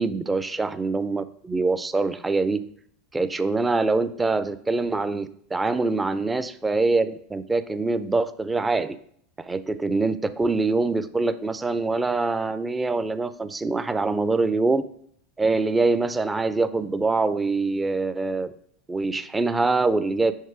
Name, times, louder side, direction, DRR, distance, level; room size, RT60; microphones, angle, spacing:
voice 1, 0.0-2.7 3.1-9.0 9.4-14.8 15.4-18.5 18.9-20.3, right 3 dB, 15° right, 13 dB, 0.5 m, -24 dB
5.3 x 4.6 x 4.7 m, 0.65 s
hypercardioid pair, 90°, 0 cm